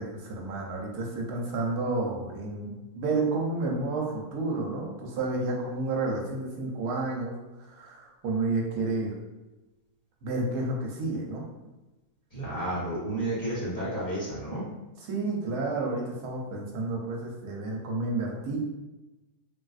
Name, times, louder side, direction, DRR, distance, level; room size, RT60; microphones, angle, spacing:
voice 1, 0.0-9.2 10.2-11.4 15.1-18.6, right 2 dB, 75° right, -1 dB, 1.2 m, -31 dB
voice 2, 12.3-14.6, right 1 dB, 35° left, -9 dB, 1.0 m, -31 dB
3.3 x 2.6 x 2.4 m, 1.1 s
omnidirectional pair, 1.7 m